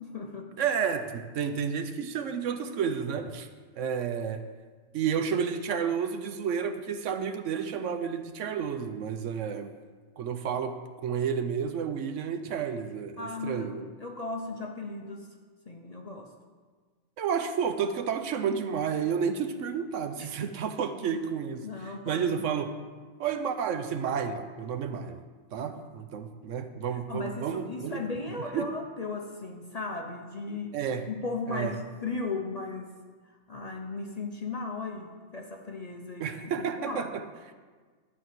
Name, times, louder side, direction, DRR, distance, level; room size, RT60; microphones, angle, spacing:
voice 1, 0.0-0.6 13.2-15.3 15.7-16.3 20.2-20.5 21.0-21.2 21.6-22.5 25.6-25.8 27.1-30.8 31.1-32.9 33.2-37.1, left 3 dB, 35° left, 2 dB, 0.7 m, -37 dB
voice 2, 0.6-3.5 3.8-4.4 4.9-9.7 10.2-13.9 17.2-21.6 22.1-22.7 23.2-25.2 25.5-28.0 28.5-28.7 30.7-31.1 31.5-31.7 36.2-37.2, right 7 dB, 70° right, 9 dB, 0.9 m, -31 dB
12.0 x 4.2 x 7.6 m, 1.5 s
omnidirectional pair, 1.4 m